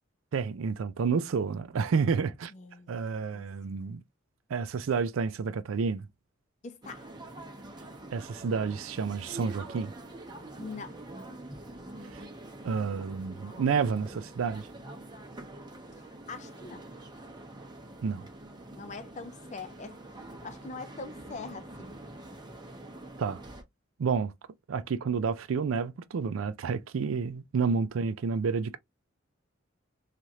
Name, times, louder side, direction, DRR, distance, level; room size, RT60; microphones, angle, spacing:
voice 1, 0.3-2.5 2.9-4.0 4.5-6.1 8.1-9.9 12.1-12.2 12.6-14.7 18.0-18.2 23.2-23.4 24.0-24.3 24.7-28.8, right 5 dB, 90° right, 0.4 m, -30 dB
voice 2, 2.5-2.9 3.3-3.4 6.6-7.1 10.6-11.0 15.9-16.8 18.8-20.0 20.4-21.9, left 3 dB, 35° left, 0.5 m, -43 dB
sound 1, 6.8-23.6, right 1 dB, 20° right, 0.7 m, -46 dB
3.1 x 2.4 x 2.7 m
head